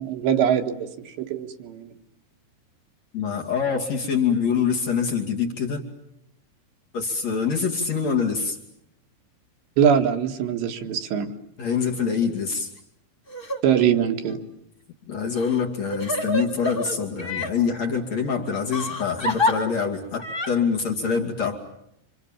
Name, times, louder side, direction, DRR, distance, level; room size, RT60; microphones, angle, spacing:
voice 1, 0.0-1.9 9.8-11.3 13.6-14.4, right 8 dB, 70° right, 4 dB, 3.9 m, -22 dB
voice 2, 3.1-5.9 6.9-8.6 11.6-12.7 15.1-21.6, left 6 dB, 40° left, 0 dB, 3.4 m, -25 dB
Crying sobbing, 13.3-13.6 14.2-14.3 15.3-17.5 18.7-19.5 20.2-20.5, left 1 dB, 20° left, 1.7 m, -27 dB
29.5 x 27.0 x 7.4 m, 0.78 s
omnidirectional pair, 5.3 m